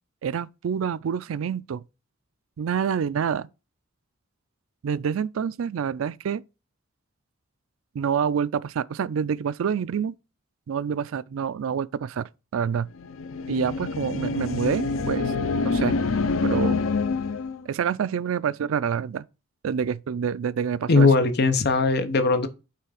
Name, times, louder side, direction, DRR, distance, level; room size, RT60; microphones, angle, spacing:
voice 1, 0.2-1.8 2.6-3.5 4.8-6.4 7.9-10.1 10.7-12.9 13.5-15.3 15.6-15.9 16.4-16.8 17.7-19.2 19.6-21.1, right 7 dB, 90° right, 0.4 m, -27 dB
sound 1, 13.0-17.6, left 4 dB, 80° left, 0.5 m, -26 dB
voice 2, 20.9-22.5, left 3 dB, 55° left, 0.8 m, -19 dB
5.6 x 3.8 x 4.9 m
head